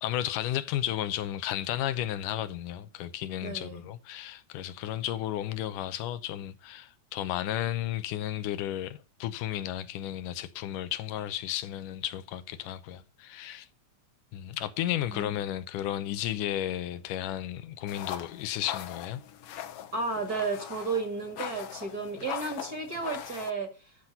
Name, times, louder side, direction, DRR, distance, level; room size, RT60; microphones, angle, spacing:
voice 1, 0.0-13.7 14.3-19.2, left 12 dB, 90° left, 2.3 m, -33 dB
voice 2, 3.4-3.8 15.1-15.3 19.9-23.7, right 4 dB, 35° right, 2.2 m, -33 dB
sound 1, 17.9-23.5, left 10 dB, 65° left, 1.5 m, -41 dB
12.5 x 6.0 x 5.5 m
omnidirectional pair, 3.6 m